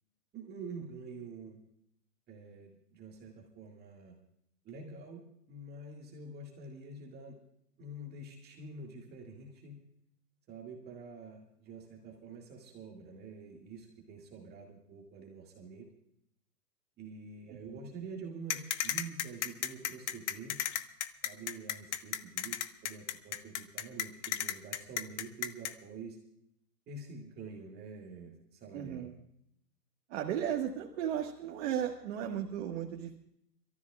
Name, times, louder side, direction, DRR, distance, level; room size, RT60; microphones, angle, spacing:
voice 1, 0.3-1.6 2.3-4.1 4.7-7.4 7.8-9.8 10.5-15.9 17.0-20.6 21.2-26.2 26.9-29.1, right 3 dB, 20° right, -1 dB, 2.0 m, -47 dB
voice 2, 17.5-17.8 28.7-29.1 30.1-33.2, right 9 dB, 45° right, 1 dB, 1.7 m, -35 dB
sound 1, 18.5-25.7, left 11 dB, 45° left, 0.9 m, -34 dB
29.5 x 14.0 x 2.4 m, 0.73 s
hypercardioid pair, 140°, 49 cm